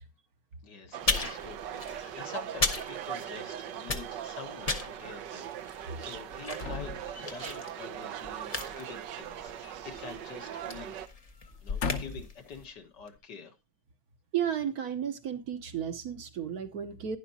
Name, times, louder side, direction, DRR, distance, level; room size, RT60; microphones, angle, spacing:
voice 1, 0.6-11.0 11.6-13.6, left 6 dB, 75° left, 2.1 m, -47 dB
sound 1, 0.9-11.1, right 10 dB, 90° right, 1.5 m, -40 dB
sound 2, 1.0-3.5 3.8-12.6, left 3 dB, 30° left, 0.8 m, -36 dB
sound 3, 6.5-7.7 9.2-10.4 10.7-10.9 11.5-12.4 13.1-13.2, left 5 dB, 50° left, 1.0 m, -38 dB
voice 2, 14.3-17.2, right 9 dB, 60° right, 1.4 m, -33 dB
11.5 x 10.5 x 2.8 m
omnidirectional pair, 1.9 m